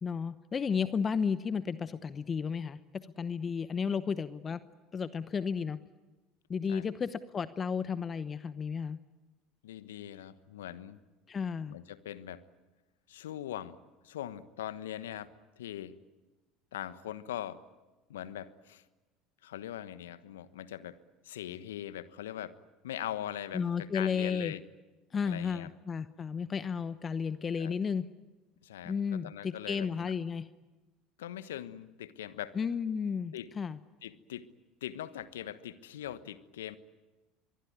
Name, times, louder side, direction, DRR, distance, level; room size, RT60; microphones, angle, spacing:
voice 1, 0.0-4.6 4.9-5.8 6.5-9.0 11.3-11.8 23.5-24.5 25.1-28.1 28.9-30.5 32.5-33.8, left 6 dB, 30° left, 14 dB, 0.9 m, -33 dB
voice 2, 9.6-11.0 11.7-12.4 13.1-13.8 14.0-15.9 16.7-17.6 18.1-18.8 19.4-21.0 21.2-22.6 22.8-24.6 25.2-25.7 27.6-27.7 28.6-30.1 31.2-32.6 33.3-33.5 34.0-34.5 34.8-36.8, left 11 dB, 75° left, 14 dB, 1.2 m, -41 dB
24.0 x 23.0 x 9.5 m, 1.1 s
hypercardioid pair, 70°, 0 cm